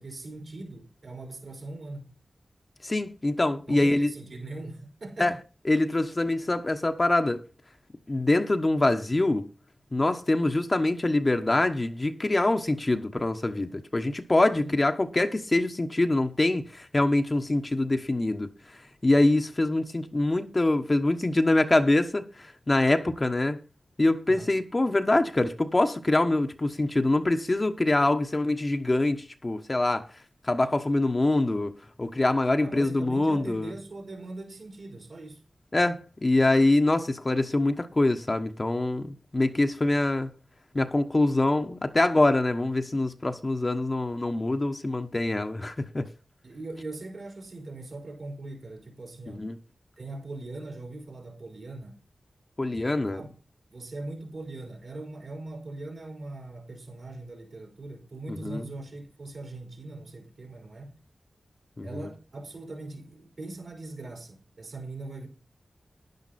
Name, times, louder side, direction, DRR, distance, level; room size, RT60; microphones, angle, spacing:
voice 1, 0.0-2.2 3.7-5.3 14.6-14.7 24.3-24.5 32.6-35.4 46.4-49.5 50.0-52.0 53.1-53.3 53.7-61.0 61.8-65.3, right 2 dB, 70° right, 5.1 m, -40 dB
voice 2, 2.8-4.1 5.2-5.3 5.7-7.4 8.1-9.5 9.9-18.5 19.0-23.6 24.0-30.1 30.4-31.7 32.0-33.7 35.7-40.3 40.7-46.1 49.3-49.5 52.6-53.2 58.3-58.6 61.8-62.1, left 2 dB, 35° left, 1.2 m, -24 dB
11.0 x 10.5 x 4.3 m
cardioid pair, 45°, 0 cm